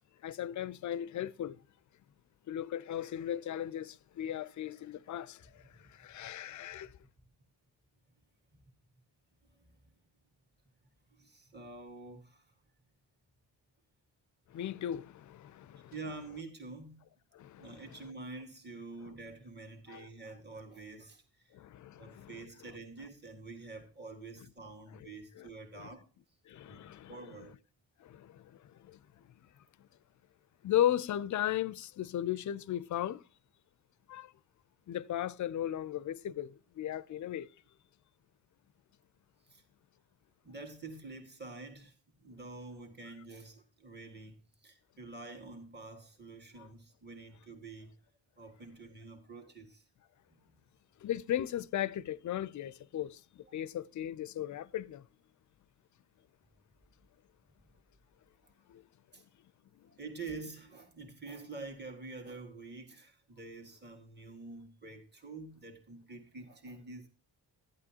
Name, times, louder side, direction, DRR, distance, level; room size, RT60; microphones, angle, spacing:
voice 1, 0.2-1.6 2.5-7.0 14.5-15.9 17.3-17.8 19.9-20.1 21.5-22.4 24.9-25.1 25.4-25.5 25.8-25.9 26.5-27.2 28.0-29.3 29.8-29.9 30.6-33.2 34.1-34.3 34.9-37.5 46.6-46.7 51.0-55.0 58.7-58.8 59.8-59.9, left 11 dB, 50° left, 0.5 m, -36 dB
voice 2, 9.5-9.9 11.1-12.5 15.9-17.1 17.6-21.6 22.0-26.1 26.6-26.8 27.1-27.5 39.4-39.6 40.4-47.9 48.4-49.9 50.3-50.4 53.4-53.5 58.4-58.5 59.1-59.2 59.9-67.1, right 3 dB, 25° right, 1.8 m, -47 dB
12.5 x 8.7 x 2.8 m
supercardioid pair, 50°, 39 cm